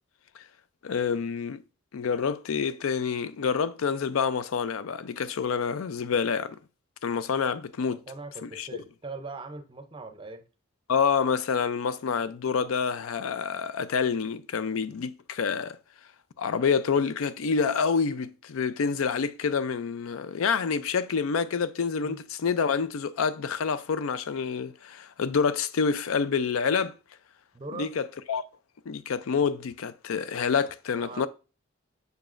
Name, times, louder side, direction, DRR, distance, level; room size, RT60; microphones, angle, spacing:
voice 1, 0.8-1.6 1.9-6.6 7.0-8.0 8.4-8.7 10.9-15.8 16.4-26.9 27.7-28.4 28.9-31.3, left 6 dB, 80° left, 0.4 m, -27 dB
voice 2, 7.9-10.4 22.0-22.2 27.5-27.9 30.9-31.3, right 3 dB, 25° right, 0.6 m, -41 dB
6.9 x 6.5 x 2.5 m
head